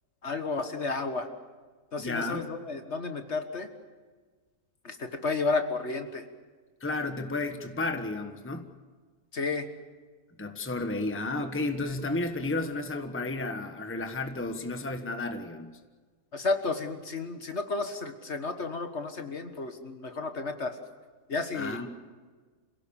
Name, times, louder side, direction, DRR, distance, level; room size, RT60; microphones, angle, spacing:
voice 1, 0.2-1.3 1.9-3.7 4.8-6.2 9.3-9.7 16.3-20.8 21.3-21.8, left 3 dB, 50° left, 7 dB, 1.7 m, -32 dB
voice 2, 2.0-2.5 6.8-8.7 10.4-15.7 21.5-21.9, left 2 dB, 10° left, 7 dB, 1.2 m, -32 dB
27.0 x 17.5 x 7.1 m, 1.4 s
omnidirectional pair, 1.6 m